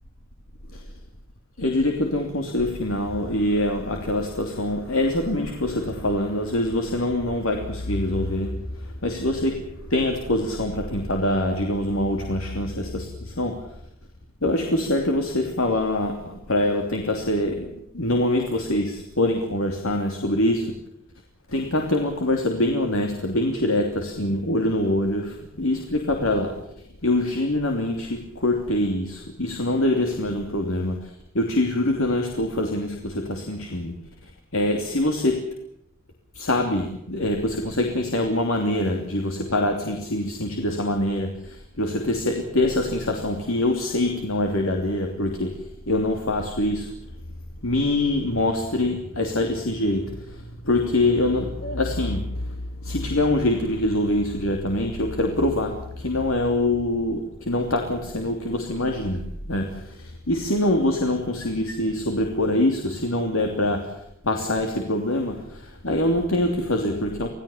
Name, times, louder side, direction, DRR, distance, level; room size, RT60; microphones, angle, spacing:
voice 1, 1.6-13.6 14.4-17.7 17.9-20.7 21.5-26.6 27.0-31.1 31.3-33.9 34.5-35.4 36.3-46.9 47.6-63.9 64.2-67.3, left 1 dB, 80° left, 3 dB, 3.0 m, -24 dB
26.5 x 17.5 x 7.3 m, 0.75 s
head